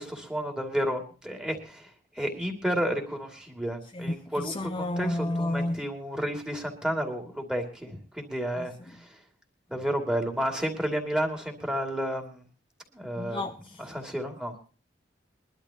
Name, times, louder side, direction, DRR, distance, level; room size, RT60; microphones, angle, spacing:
voice 1, 0.0-9.2 9.7-12.4 12.9-13.4 13.8-14.6, equal, 5° right, 2.4 m, -31 dB
voice 2, 3.9-5.8 8.6-8.7 13.2-13.8, left 1 dB, 25° left, 0.6 m, -31 dB
22.5 x 12.0 x 2.9 m
head